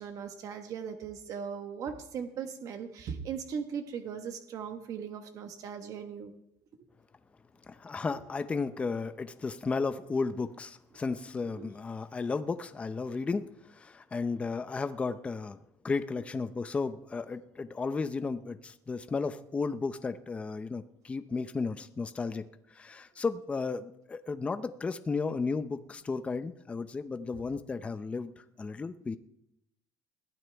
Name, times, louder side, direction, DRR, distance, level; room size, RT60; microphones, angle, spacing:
voice 1, 0.0-6.3 11.5-11.7, right 7 dB, 45° right, 6 dB, 1.3 m, -38 dB
voice 2, 7.7-15.6 15.8-22.4 22.7-29.2, left 4 dB, 15° left, 11 dB, 0.6 m, -34 dB
21.0 x 15.0 x 3.5 m, 0.83 s
cardioid pair, 150°, 8 cm